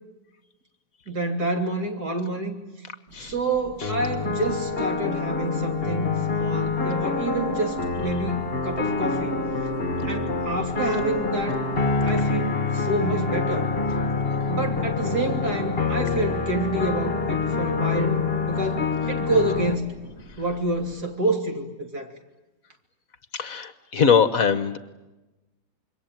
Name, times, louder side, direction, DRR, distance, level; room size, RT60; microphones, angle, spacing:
voice 1, 1.1-2.6 3.2-9.3 10.1-11.6 12.0-13.7 14.5-19.9 20.4-22.1, right 2 dB, 65° right, 4 dB, 3.6 m, -28 dB
sound 1, 3.1-21.0, equal, 40° right, 8.2 m, -45 dB
sound 2, 3.8-19.8, left 4 dB, 35° left, 1.7 m, -26 dB
voice 2, 23.3-24.8, left 6 dB, 55° left, 13 dB, 1.6 m, -21 dB
26.5 x 23.0 x 9.2 m, 1.1 s
omnidirectional pair, 1.9 m